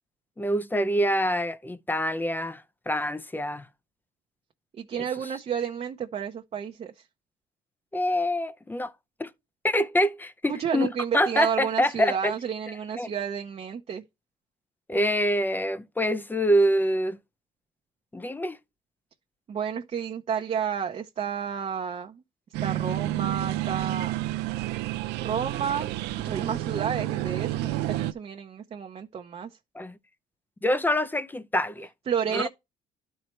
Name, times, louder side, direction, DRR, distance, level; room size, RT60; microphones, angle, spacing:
voice 1, 0.4-3.7 5.0-5.1 7.9-8.9 9.2-9.3 9.6-10.9 11.1-12.3 13.0-13.1 14.9-17.2 18.1-18.6 29.7-30.0 30.6-31.9 32.3-32.5, equal, 10° left, 0.6 m, -25 dB
voice 2, 4.7-7.0 10.5-14.0 19.5-22.2 22.6-24.1 25.2-25.9 26.2-29.6 32.1-32.5, right 7 dB, 40° right, 0.8 m, -31 dB
sound 1, 22.5-28.1, right 15 dB, 90° right, 0.5 m, -30 dB
12.0 x 4.5 x 3.2 m
cardioid pair, 110°, 17 cm